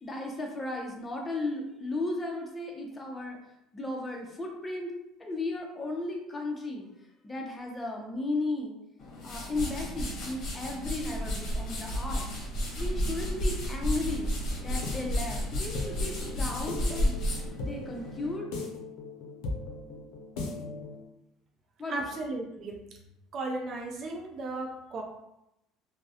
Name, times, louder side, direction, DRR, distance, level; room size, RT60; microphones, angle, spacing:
voice 1, 0.0-3.4 3.7-4.9 5.2-6.9 7.2-8.7 9.2-12.3 12.8-14.3 14.6-17.2 17.6-18.5 21.8-22.0, left 2 dB, 20° left, 0 dB, 0.5 m, -35 dB
sound 1, 9.0-18.4, equal, 50° left, 0.8 m, -32 dB
sound 2, 14.5-21.0, left 3 dB, 80° left, 0.5 m, -39 dB
voice 2, 21.9-22.8 23.3-25.0, right 2 dB, 45° right, 0 dB, 0.4 m, -35 dB
2.3 x 2.0 x 2.7 m, 0.85 s
cardioid pair, 115°, 0 cm